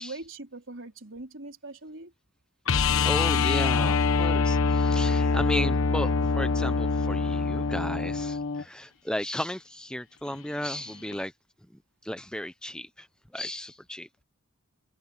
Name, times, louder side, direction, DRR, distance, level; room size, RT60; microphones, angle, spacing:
voice 1, 0.0-2.1, right 2 dB, 65° right, 4.2 m, -41 dB
sound 1, 2.7-8.6 11.1-11.2, left 4 dB, 75° left, 1.1 m, -24 dB
voice 2, 3.0-11.3 12.0-13.1 13.3-14.2, left 1 dB, 5° left, 0.6 m, -34 dB
head